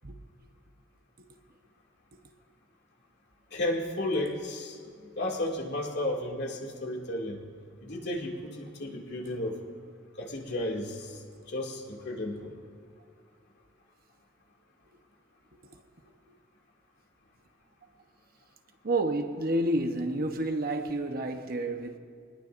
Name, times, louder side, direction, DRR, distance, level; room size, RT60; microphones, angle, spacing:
voice 1, 3.5-4.8 5.2-7.4 7.8-9.6 10.2-11.2 11.5-12.5, left 1 dB, 60° left, 2.5 m, -33 dB
voice 2, 18.8-22.0, right 1 dB, 50° right, 1.1 m, -30 dB
24.5 x 20.0 x 2.6 m
head